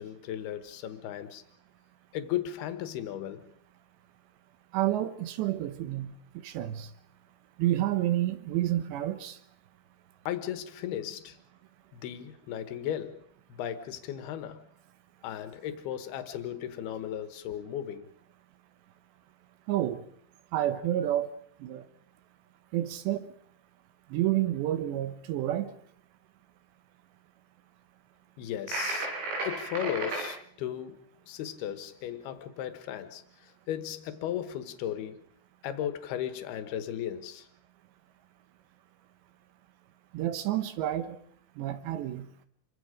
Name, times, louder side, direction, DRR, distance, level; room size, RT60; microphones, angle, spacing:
voice 1, 0.0-1.4 2.1-3.5 10.3-11.4 11.9-13.2 13.5-14.7 15.2-18.1 28.4-29.1 29.4-35.2 35.6-37.5, left 10 dB, 70° left, 2.6 m, -36 dB
voice 2, 4.7-6.9 7.6-9.4 19.7-20.0 20.5-21.3 21.6-21.9 22.7-23.3 24.1-25.8 40.1-41.2 41.6-42.3, right 13 dB, 70° right, 2.9 m, -29 dB
sound 1, 28.7-30.3, right 2 dB, 90° right, 9.2 m, -33 dB
27.5 x 24.0 x 5.0 m
omnidirectional pair, 5.8 m